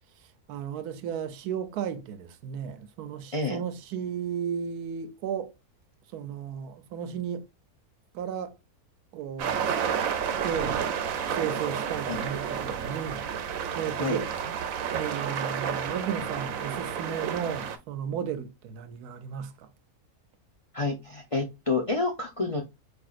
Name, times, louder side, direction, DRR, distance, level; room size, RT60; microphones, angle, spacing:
voice 1, 0.5-5.5 6.1-7.5 8.1-8.6 9.1-9.7 10.4-10.8 11.3-13.2 13.7-14.3 14.9-19.7, right 8 dB, 90° right, 1.2 m, -34 dB
sound 1, 9.4-17.8, right 7 dB, 70° right, 1.0 m, -31 dB
voice 2, 20.7-22.6, left 3 dB, 45° left, 0.4 m, -29 dB
5.0 x 3.5 x 2.4 m
omnidirectional pair, 1.6 m